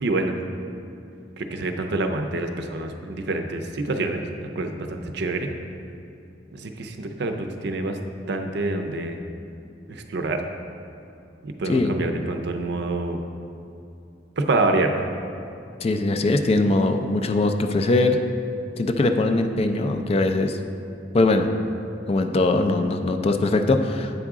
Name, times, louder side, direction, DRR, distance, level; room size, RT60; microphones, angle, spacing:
voice 1, 0.0-0.4 1.4-4.2 4.6-5.5 6.5-8.0 8.3-9.2 9.9-10.4 11.4-13.2 14.4-15.1, right 2 dB, 65° right, 6 dB, 0.5 m, -26 dB
voice 2, 15.8-18.2 18.8-20.6 21.1-21.5 22.1-24.1, left 2 dB, 35° left, 6 dB, 0.3 m, -21 dB
8.1 x 4.8 x 3.6 m, 2.8 s
head